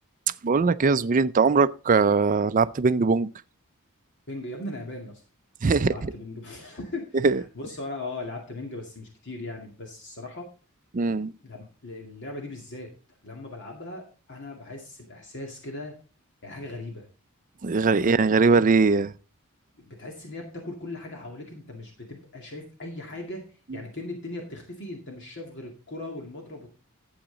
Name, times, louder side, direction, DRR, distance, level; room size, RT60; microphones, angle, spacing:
voice 1, 0.4-3.3 5.6-6.1 7.2-7.4 10.9-11.3 17.6-19.1, right 4 dB, 40° right, 0.4 m, -21 dB
voice 2, 4.3-5.2 5.7-7.2 7.6-10.5 11.4-12.9 13.2-15.9 16.4-17.1 17.9-18.3 19.8-23.4 23.7-26.7, left 2 dB, 55° left, 2.2 m, -38 dB
12.0 x 8.0 x 3.9 m
head